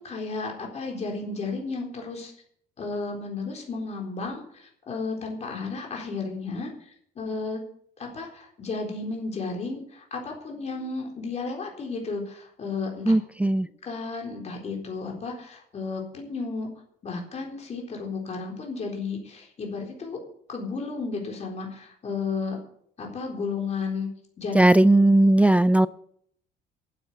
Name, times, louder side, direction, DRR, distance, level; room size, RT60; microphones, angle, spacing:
voice 1, 0.0-2.3 2.8-7.6 8.0-13.1 13.8-16.7 17.0-20.2 20.5-22.6 23.0-24.1 24.4-24.6 25.4-25.5, left 4 dB, 40° left, 1 dB, 4.0 m, -33 dB
voice 2, 13.1-13.7 24.5-25.9, right 1 dB, 10° right, 16 dB, 0.4 m, -18 dB
8.9 x 8.6 x 9.4 m, 0.65 s
cardioid pair, 110°, 17 cm